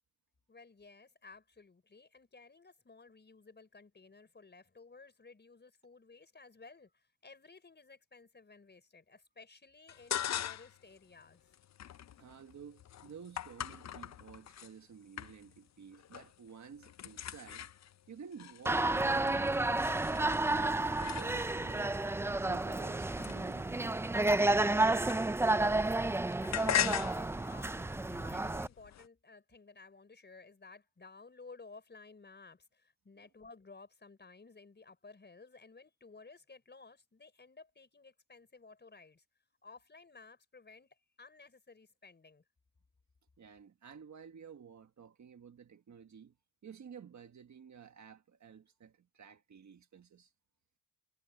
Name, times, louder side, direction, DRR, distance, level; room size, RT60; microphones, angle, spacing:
voice 1, 0.5-11.5 26.9-39.2 39.6-42.4, left 4 dB, 25° left, 5.2 m, -56 dB
sound 1, 9.9-10.8 11.2-14.7 15.2-15.7 15.9-16.4 16.7-21.7 22.4-25.6 25.9-29.1, left 10 dB, 45° left, 0.6 m, -40 dB
voice 2, 12.2-17.7 18.1-22.0 22.3-25.3 33.2-33.3 43.4-46.3 46.6-50.3, right 7 dB, 50° right, 1.6 m, -53 dB
sound 2, 18.7-28.7, right 2 dB, 5° right, 0.3 m, -31 dB
cardioid pair, 120°, 37 cm